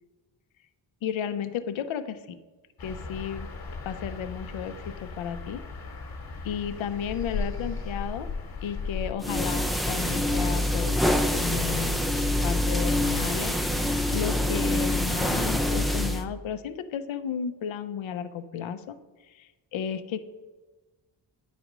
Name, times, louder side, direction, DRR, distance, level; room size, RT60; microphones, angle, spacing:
voice 1, 1.0-2.4 2.8-3.5 3.8-5.6 6.4-8.3 8.6-11.0 11.3-12.0 12.4-13.6 14.1-19.0 19.3-20.2, left 8 dB, 80° left, 12 dB, 0.6 m, -33 dB
sound 1, 2.8-9.1, left 4 dB, 50° left, 1.4 m, -36 dB
sound 2, 9.2-16.2, left 1 dB, ahead, 0.3 m, -25 dB
9.8 x 4.2 x 6.0 m, 1.2 s
wide cardioid pair, 165°, 46 cm